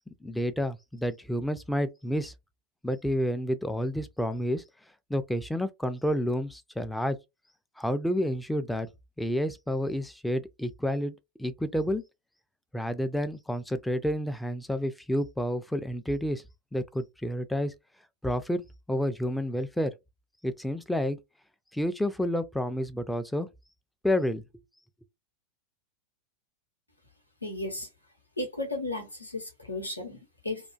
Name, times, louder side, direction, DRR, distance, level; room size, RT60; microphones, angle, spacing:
voice 1, 0.2-2.3 2.8-4.6 5.1-7.2 7.8-8.9 9.2-12.0 12.7-16.4 16.7-17.7 18.2-18.6 18.9-19.9 20.4-21.2 21.7-23.5 24.0-24.4, equal, 5° left, 0.3 m, -29 dB
voice 2, 27.4-27.9 28.4-30.7, left 2 dB, 85° left, 0.8 m, -35 dB
2.4 x 2.3 x 2.3 m
figure-of-eight pair, 90°, 0 cm